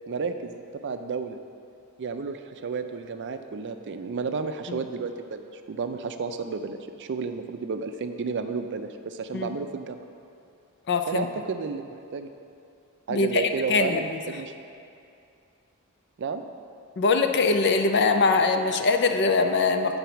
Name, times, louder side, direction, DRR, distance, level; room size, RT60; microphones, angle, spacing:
voice 1, 0.1-1.4 2.0-10.0 11.1-12.3 13.1-14.5 16.2-16.4, right 5 dB, 55° right, 8 dB, 0.4 m, -32 dB
voice 2, 10.9-11.3 13.1-13.4 13.7-14.0 17.0-20.0, left 4 dB, 50° left, 7 dB, 0.5 m, -22 dB
9.2 x 4.0 x 5.7 m, 2.6 s
head